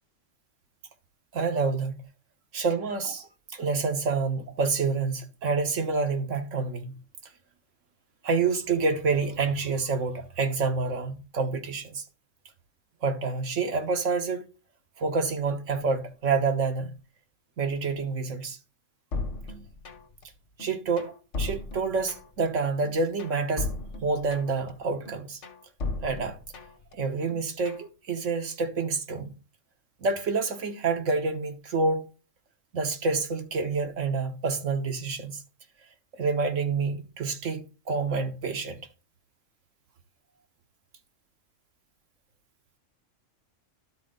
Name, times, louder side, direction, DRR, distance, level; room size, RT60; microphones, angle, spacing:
voice 1, 1.3-1.9 2.5-7.0 8.2-12.0 13.0-14.4 15.0-17.0 17.6-18.6 20.6-23.7 24.0-25.4 26.0-26.4 26.9-29.3 30.0-32.1 32.7-35.4 36.2-38.8, right 4 dB, 75° right, 1.4 m, -28 dB
sound 1, 19.1-20.2 20.6-22.5 22.8-24.7 25.1-26.9 27.3-27.9, left 3 dB, 70° left, 1.4 m, -36 dB
12.5 x 4.3 x 3.8 m
omnidirectional pair, 1.3 m